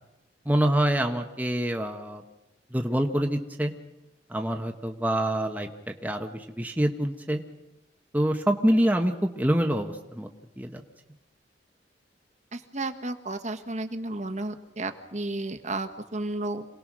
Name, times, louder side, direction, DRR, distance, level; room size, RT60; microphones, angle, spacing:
voice 1, 0.4-2.2 2.7-3.7 4.3-5.7 6.0-7.4 8.1-10.3 10.6-10.8, right 1 dB, 10° right, 4 dB, 1.1 m, -26 dB
voice 2, 12.5-16.6, right 2 dB, 40° right, 7 dB, 1.5 m, -33 dB
27.0 x 19.0 x 6.2 m, 0.99 s
head